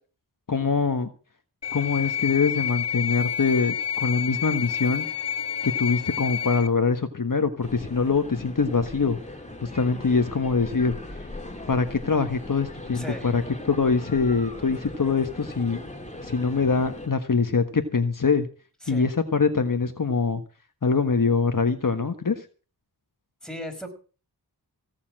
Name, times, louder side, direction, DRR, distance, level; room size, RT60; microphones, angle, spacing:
voice 1, 0.5-1.1 1.7-5.1 5.6-9.2 9.6-11.0 11.7-13.4 13.7-15.8 16.2-18.5 18.9-20.4 20.8-22.4, left 4 dB, 55° left, 7 dB, 1.4 m, -24 dB
sound 1, 1.6-6.7, left 9 dB, 85° left, 1.3 m, -29 dB
sound 2, 7.6-17.1, left 1 dB, 15° left, 3.1 m, -39 dB
voice 2, 12.9-13.3 18.8-19.1 23.4-23.9, equal, ahead, 4 dB, 5.2 m, -36 dB
16.5 x 7.1 x 7.5 m, 0.38 s
cardioid pair, 45°, 40 cm